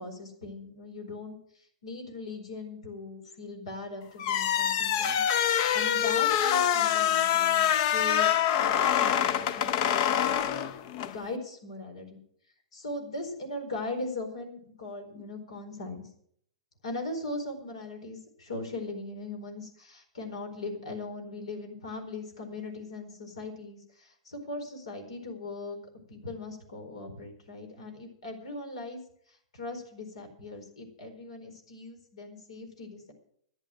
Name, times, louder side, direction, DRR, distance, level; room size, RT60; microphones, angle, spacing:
voice 1, 0.0-5.2 5.7-10.4 11.0-12.2 12.7-16.1 16.8-25.8 26.1-29.0 29.3-33.1, left 2 dB, 75° left, 5 dB, 4.6 m, -39 dB
sound 1, 4.2-11.2, left 10 dB, 50° left, 0.9 m, -25 dB
14.0 x 10.5 x 6.2 m, 0.64 s
figure-of-eight pair, 105°, 3 cm